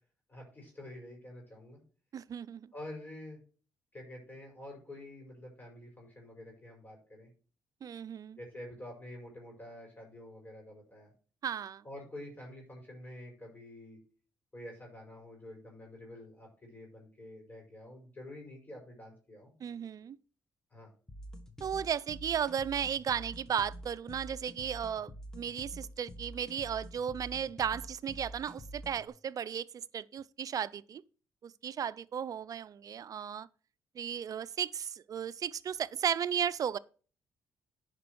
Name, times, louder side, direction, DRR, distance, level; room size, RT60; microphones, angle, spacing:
voice 1, 0.3-1.8 2.7-3.4 3.9-7.3 8.4-11.1 11.8-14.0 14.5-19.5 20.7-20.9, left 1 dB, 25° left, 5.2 m, -48 dB
voice 2, 2.1-2.7 7.8-8.4 11.4-11.8 19.6-20.2 21.6-29.7 29.9-31.0 31.4-33.5 33.9-36.8, right 8 dB, 55° right, 0.5 m, -35 dB
sound 1, 21.1-29.1, equal, 10° left, 1.8 m, -47 dB
10.0 x 5.2 x 4.7 m
supercardioid pair, 65°, 7 cm